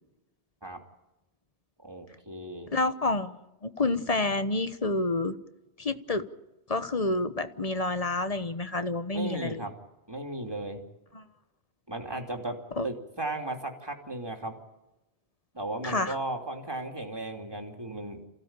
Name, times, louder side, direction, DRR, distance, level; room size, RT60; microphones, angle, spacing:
voice 1, 1.8-2.7 9.1-9.7 10.1-10.8 11.9-14.6 15.5-18.2, right 2 dB, 20° right, 3 dB, 3.0 m, -36 dB
voice 2, 2.7-3.3 3.6-5.3 5.8-6.2 6.7-9.6 11.1-11.2 12.8-12.9 15.8-16.2, left 2 dB, 35° left, 11 dB, 1.1 m, -28 dB
27.5 x 16.0 x 9.0 m, 0.97 s
omnidirectional pair, 1.1 m